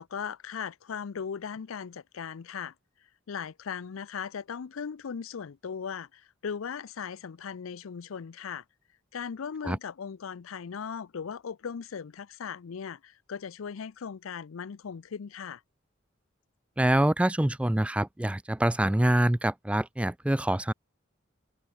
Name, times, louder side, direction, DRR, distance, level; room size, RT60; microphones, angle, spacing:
voice 1, 0.0-2.7 3.3-8.6 9.1-15.6, left 6 dB, 85° left, 0.5 m, -38 dB
voice 2, 16.8-20.7, right 1 dB, 5° right, 0.3 m, -25 dB
head